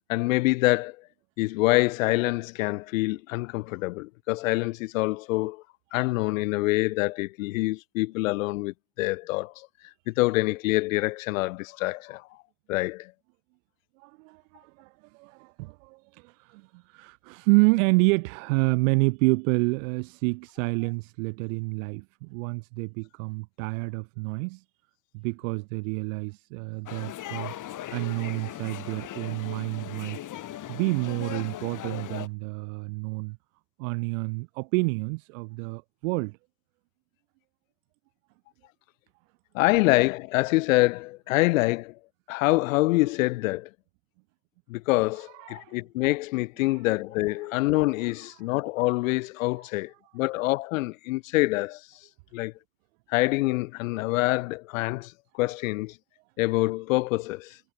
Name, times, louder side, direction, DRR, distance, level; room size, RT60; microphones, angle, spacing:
voice 1, 0.1-1.0 1.4-5.6 5.9-9.7 10.1-12.3 12.7-13.1 39.5-42.0 42.3-43.7 44.7-52.1 52.3-52.5 53.1-56.0 56.4-57.6, left 21 dB, 80° left, 0.7 m, -26 dB
voice 2, 14.0-24.6 25.1-30.2 30.7-33.4 33.8-36.4 45.3-45.8 46.6-46.8, right 28 dB, 75° right, 2.9 m, -28 dB
sound 1, 26.9-32.3, left 13 dB, 50° left, 1.7 m, -38 dB
hypercardioid pair, 60°, 40 cm